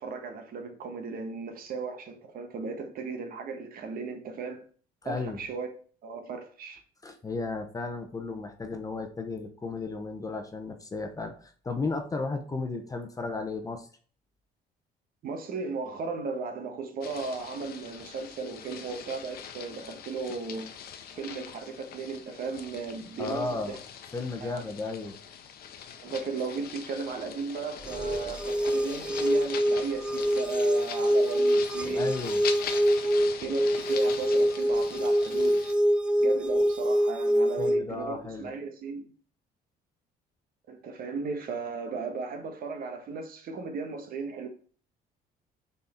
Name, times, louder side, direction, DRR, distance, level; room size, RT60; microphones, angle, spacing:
voice 1, 0.0-4.6 5.0-5.7 6.0-6.8 15.2-20.7 21.1-23.8 24.4-24.7 26.0-32.1 33.4-35.6 36.2-39.1 40.7-44.5, right 4 dB, 60° right, 1.4 m, -36 dB
voice 2, 5.0-5.4 7.0-13.9 23.2-23.8 24.1-25.2 32.0-32.4 37.6-38.5, left 3 dB, 20° left, 1.0 m, -34 dB
sound 1, 17.0-35.7, left 8 dB, 65° left, 0.9 m, -42 dB
sound 2, 27.8-37.8, equal, 5° right, 0.3 m, -25 dB
6.1 x 4.2 x 4.4 m
cardioid pair, 110°, 17 cm